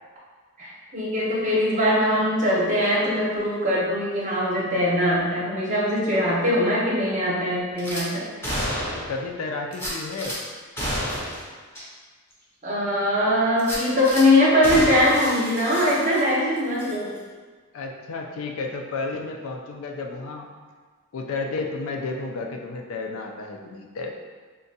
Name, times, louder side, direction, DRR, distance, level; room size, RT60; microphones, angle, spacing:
voice 1, 0.6-8.3 12.6-17.2, left 1 dB, 35° right, -6 dB, 0.7 m, -21 dB
Gunshot gunfire / Glass, 7.8-8.0 8.4-9.2 9.7-10.4 10.8-11.4 11.7-11.8 12.3-12.4 13.6-14.2 14.6-16.4 16.8-16.9, equal, 10° left, 0.6 m, -30 dB
voice 2, 9.1-10.4 17.7-20.5 21.1-24.2, left 3 dB, 65° left, 2 dB, 0.3 m, -32 dB
3.6 x 2.2 x 2.7 m, 1.5 s
head